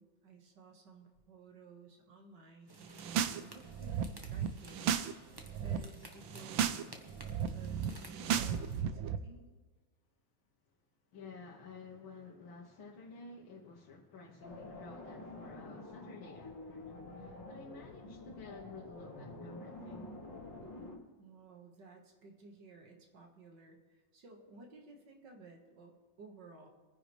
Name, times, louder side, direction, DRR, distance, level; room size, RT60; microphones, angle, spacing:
voice 1, 0.0-4.9 5.6-6.8 7.5-9.5 21.2-26.7, right 3 dB, 60° right, 2.2 m, -56 dB
sound 1, 2.7-8.8, right 1 dB, 15° right, 0.9 m, -54 dB
sound 2, 2.8-3.4 3.7-5.1 5.4-5.8 6.2-6.8 7.1-9.2, right 8 dB, 80° right, 1.4 m, -34 dB
voice 2, 11.1-20.1, left 4 dB, 80° left, 2.0 m, -52 dB
sound 3, 14.4-21.0, left 2 dB, 65° left, 2.7 m, -48 dB
26.0 x 10.0 x 3.3 m
omnidirectional pair, 2.2 m